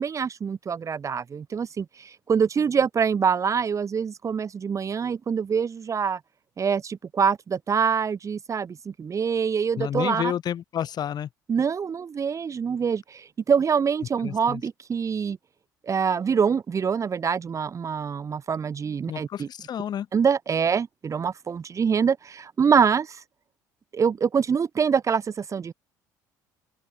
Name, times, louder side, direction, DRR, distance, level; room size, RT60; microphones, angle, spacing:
voice 1, 0.0-6.2 6.6-10.3 11.5-15.4 15.9-19.5 20.1-23.2 23.9-25.7, right 6 dB, 30° right, 1.7 m, -25 dB
voice 2, 9.8-11.3 14.2-14.6 19.1-20.1, left 9 dB, 45° left, 4.5 m, -30 dB
open air
figure-of-eight pair, 60°, 10 cm